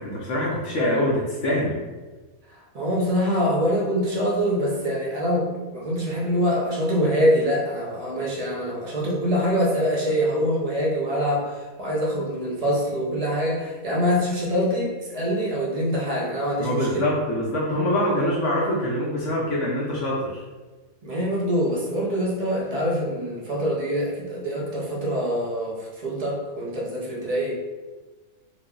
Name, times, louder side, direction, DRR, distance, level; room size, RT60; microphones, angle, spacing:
voice 1, 0.0-1.8 16.6-20.4, left 1 dB, 65° left, -4 dB, 0.9 m, -24 dB
voice 2, 2.7-17.1 21.0-27.5, equal, 40° right, -4 dB, 0.5 m, -24 dB
3.0 x 2.0 x 3.6 m, 1.3 s
omnidirectional pair, 1.4 m